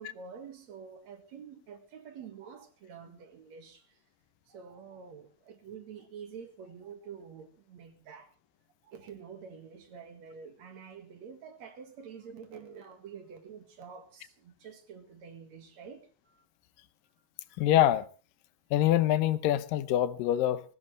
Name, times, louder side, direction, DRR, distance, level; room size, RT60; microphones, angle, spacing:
voice 1, 0.0-4.0 4.5-8.3 8.8-16.4, right 6 dB, 60° right, 2.8 m, -48 dB
voice 2, 17.6-18.1 18.7-20.6, left 12 dB, 90° left, 2.6 m, -25 dB
20.5 x 16.5 x 3.2 m
omnidirectional pair, 3.8 m